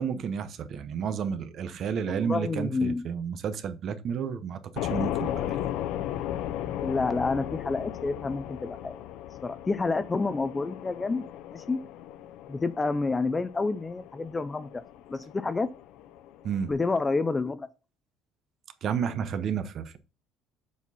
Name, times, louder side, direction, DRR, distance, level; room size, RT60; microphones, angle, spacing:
voice 1, 0.0-4.6 4.9-5.6 16.4-16.7 18.8-20.0, right 7 dB, 35° right, 0.8 m, -31 dB
voice 2, 2.1-3.0 6.8-9.0 9.4-11.2 11.5-11.8 12.5-14.8 15.1-15.7 16.7-17.7, left 3 dB, 15° left, 0.3 m, -29 dB
sound 1, 4.7-16.7, left 11 dB, 65° left, 0.6 m, -36 dB
7.3 x 4.3 x 5.5 m
cardioid pair, 180°, 0 cm